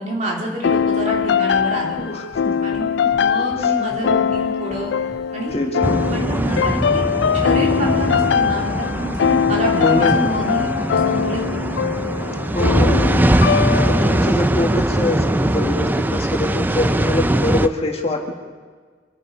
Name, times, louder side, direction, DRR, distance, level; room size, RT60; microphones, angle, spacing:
voice 1, 0.0-2.0 2.6-2.9 3.2-4.9 5.3-5.6 6.1-7.1 7.3-11.6, right 1 dB, 45° right, -2 dB, 3.2 m, -27 dB
sound 1, 0.6-14.3, left 7 dB, 90° left, 0.3 m, -21 dB
sound 2, 0.7-17.7, equal, 80° right, 4.2 m, -43 dB
voice 2, 2.0-2.7 3.6-3.9 5.5-6.1 7.7-7.9 9.7-10.3 12.5-13.2 13.8-18.3, left 1 dB, 35° left, 2 dB, 1.6 m, -24 dB
sound 3, 5.8-17.7, right 1 dB, 10° right, 0.4 m, -21 dB
25.5 x 9.7 x 5.5 m, 1.5 s
head